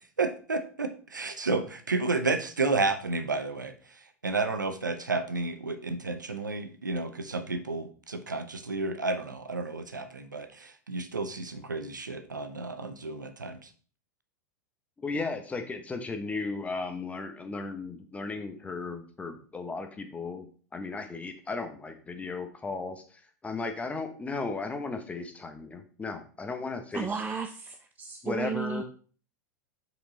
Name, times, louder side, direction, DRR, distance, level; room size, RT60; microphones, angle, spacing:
voice 1, 0.0-3.7 4.2-13.7, right 3 dB, 85° right, 8 dB, 0.8 m, -31 dB
voice 2, 15.0-20.5 20.7-27.2 28.2-28.8, left 3 dB, 15° left, 6 dB, 1.2 m, -35 dB
voice 3, 26.9-28.8, right 6 dB, 15° right, 6 dB, 0.5 m, -34 dB
6.3 x 5.1 x 4.1 m, 0.42 s
figure-of-eight pair, 90°, 10 cm